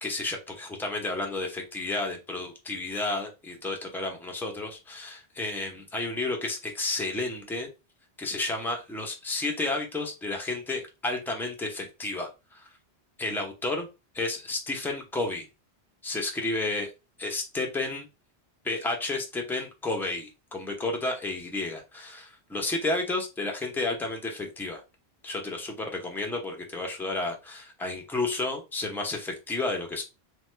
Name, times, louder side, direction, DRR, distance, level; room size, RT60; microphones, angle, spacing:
voice 1, 0.0-7.7 8.2-12.6 13.2-13.9 14.1-15.5 16.0-16.9 17.2-18.1 18.6-24.8 25.2-30.0, left 2 dB, 5° left, 2 dB, 0.4 m, -31 dB
3.0 x 2.2 x 3.1 m, 0.27 s
omnidirectional pair, 1.1 m